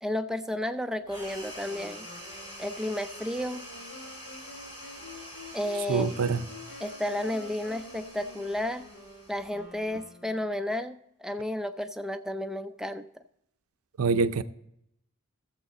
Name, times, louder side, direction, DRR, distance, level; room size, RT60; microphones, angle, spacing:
voice 1, 0.0-2.1 2.6-3.7 5.5-6.1 6.8-8.9 9.3-13.2, left 1 dB, 5° right, 0.4 m, -32 dB
sound 1, 1.1-9.9, equal, 30° left, 3.6 m, -46 dB
Wind instrument woodwind instrument, 1.6-10.7, left 2 dB, 80° left, 3.8 m, -48 dB
voice 2, 5.9-6.4 14.0-14.4, right 4 dB, 90° right, 0.6 m, -25 dB
14.0 x 7.4 x 3.9 m
head